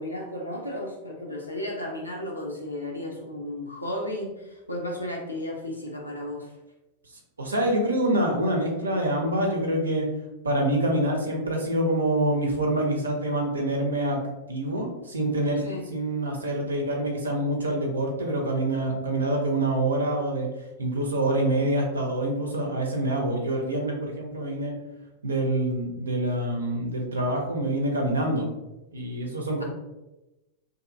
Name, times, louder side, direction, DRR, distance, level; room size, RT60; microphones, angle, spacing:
voice 1, 0.0-6.5 15.5-15.9, left 1 dB, 85° left, -2 dB, 0.4 m, -34 dB
voice 2, 7.4-10.1 10.4-14.2 14.5-15.6 15.9-20.5 20.8-24.7 25.2-28.5 28.9-29.6, right 1 dB, 75° right, 1 dB, 0.6 m, -26 dB
2.6 x 2.6 x 2.5 m, 0.99 s
figure-of-eight pair, 90°, 0 cm